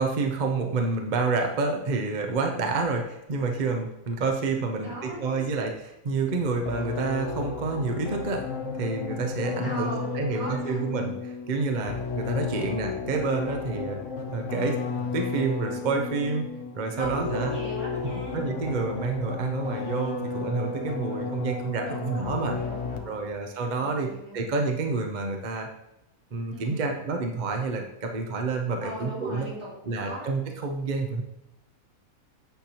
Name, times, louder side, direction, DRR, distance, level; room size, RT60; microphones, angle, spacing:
voice 1, 0.0-8.5 8.8-14.0 14.3-16.5 16.7-17.5 18.3-22.6 23.1-25.7 26.3-29.5 29.9-31.2, right 4 dB, 40° right, 3 dB, 0.7 m, -29 dB
voice 2, 4.7-5.7 9.6-10.9 12.4-12.7 16.9-18.5 21.8-23.3 23.8-24.5 26.5-27.0 28.8-30.3, right 1 dB, 75° right, -7 dB, 3.6 m, -38 dB
sound 1, 6.7-23.3, left 4 dB, 60° left, 1.0 m, -33 dB
9.0 x 5.8 x 2.9 m, 0.88 s
omnidirectional pair, 1.6 m